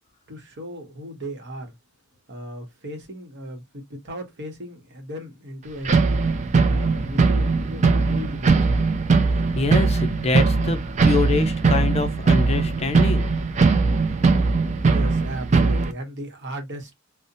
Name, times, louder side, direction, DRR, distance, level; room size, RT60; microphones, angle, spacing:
voice 1, 0.3-1.7 2.3-6.1 6.6-8.8 14.9-16.9, equal, 55° right, 0.9 m, -36 dB
sound 1, 5.8-15.9, right 4 dB, 35° right, 0.4 m, -20 dB
voice 2, 9.6-13.3, left 3 dB, 30° left, 0.4 m, -25 dB
2.6 x 2.1 x 2.6 m
head